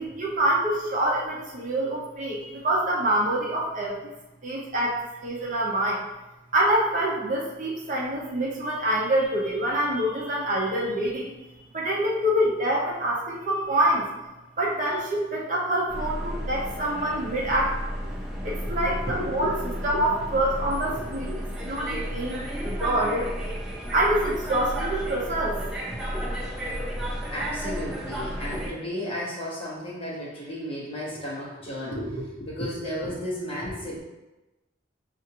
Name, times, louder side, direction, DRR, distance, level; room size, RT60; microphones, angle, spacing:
voice 1, 0.0-4.0 4.4-6.0 6.5-11.3 11.7-14.0 14.6-17.7 18.4-19.5 19.8-21.3 21.6-23.3 23.9-25.6, right 1 dB, 40° right, -3 dB, 0.7 m, -26 dB
sound 1, 15.9-28.7, equal, 5° right, 0.4 m, -33 dB
voice 2, 19.1-20.0 20.8-21.4 27.3-34.0, equal, 30° left, -5 dB, 1.0 m, -33 dB
5.6 x 2.5 x 2.8 m, 1.0 s
head